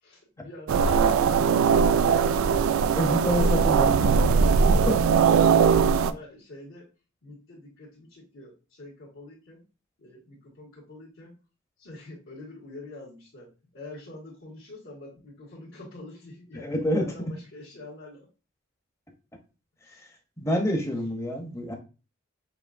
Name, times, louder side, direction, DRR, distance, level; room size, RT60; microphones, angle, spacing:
voice 1, 0.0-1.9 3.3-4.5 6.0-6.9 7.2-9.6 10.0-11.3 11.8-18.2 19.8-20.0, left 2 dB, 75° left, -11 dB, 2.1 m, -45 dB
sound 1, 0.7-6.1, right 6 dB, 75° right, 0.3 m, -20 dB
voice 2, 2.9-4.3 4.6-5.0 16.5-17.3 20.4-21.7, equal, 15° left, 3 dB, 0.7 m, -28 dB
6.9 x 2.6 x 2.5 m, 0.33 s
head